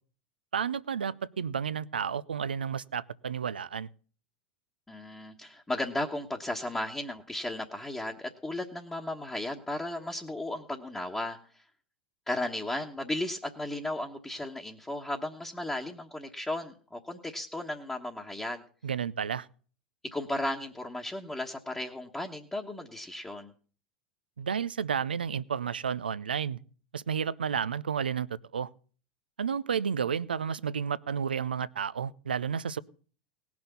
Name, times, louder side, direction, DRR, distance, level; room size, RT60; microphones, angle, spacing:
voice 1, 0.5-3.9 18.8-19.5 24.4-26.6 26.9-28.3 28.5-28.7 29.4-32.8, right 7 dB, 90° right, 17 dB, 0.5 m, -31 dB
voice 2, 4.9-11.4 12.3-18.6 20.1-23.5, left 1 dB, 10° left, -1 dB, 1.3 m, -35 dB
18.0 x 6.1 x 6.9 m, 0.42 s
hypercardioid pair, 90°, 5 cm